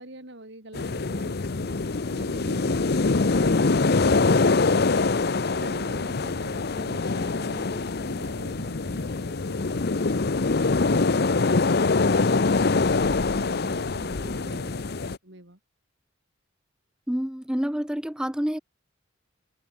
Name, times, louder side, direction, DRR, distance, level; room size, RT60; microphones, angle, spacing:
voice 1, 0.0-15.6, right 1 dB, 60° right, 4.1 m, -46 dB
sound 1, 0.7-15.2, left 3 dB, 55° left, 0.7 m, -24 dB
voice 2, 17.1-18.6, equal, 5° right, 0.5 m, -28 dB
head